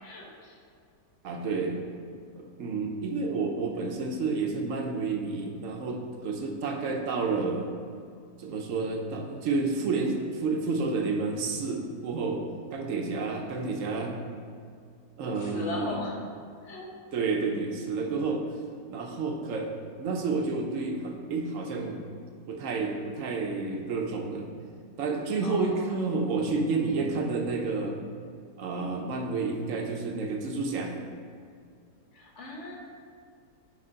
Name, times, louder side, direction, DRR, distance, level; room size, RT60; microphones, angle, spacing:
voice 1, 0.0-0.6 15.4-16.2 16.6-16.9 25.4-26.0 32.1-32.8, left 2 dB, 45° left, -2 dB, 1.2 m, -38 dB
voice 2, 1.2-1.8 2.4-7.6 8.4-12.4 12.7-14.1 15.2-16.0 17.1-18.4 18.9-19.7 20.0-22.0 22.5-24.5 25.0-28.0 28.6-30.9, right 4 dB, 60° right, 2 dB, 0.9 m, -30 dB
9.7 x 3.3 x 3.9 m, 2.3 s
omnidirectional pair, 1.8 m